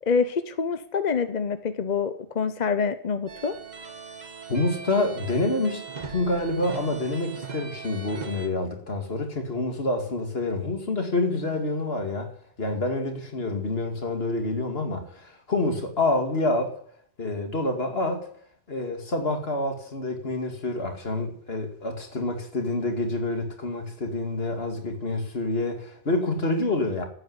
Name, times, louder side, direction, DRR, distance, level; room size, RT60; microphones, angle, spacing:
voice 1, 0.0-3.5, left 5 dB, 45° left, 0.8 m, -26 dB
sound 1, 3.3-8.5, right 6 dB, 45° right, 1.2 m, -40 dB
voice 2, 4.5-5.8 6.1-12.3 12.6-16.7 17.2-18.3 18.7-27.0, left 2 dB, 70° left, 2.5 m, -27 dB
12.5 x 9.1 x 9.7 m
omnidirectional pair, 1.1 m